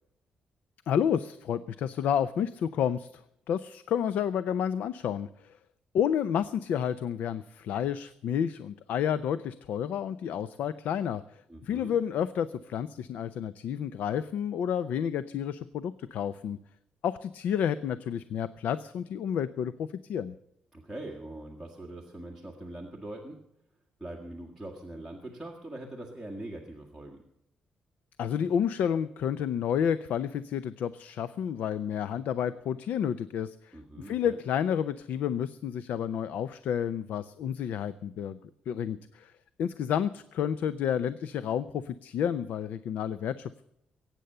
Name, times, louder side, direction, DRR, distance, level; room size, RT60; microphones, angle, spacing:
voice 1, 0.9-3.2 3.5-5.5 5.9-11.2 11.6-16.6 17.0-20.3 28.2-33.8 34.0-38.4 38.7-39.3 39.6-43.6, left 8 dB, 75° left, 14 dB, 0.5 m, -30 dB
voice 2, 11.5-12.0 20.7-23.4 24.0-27.2 33.7-34.4, right 1 dB, 5° left, 0 dB, 1.8 m, -42 dB
22.5 x 9.1 x 6.8 m, 0.78 s
cardioid pair, 170°, 3 cm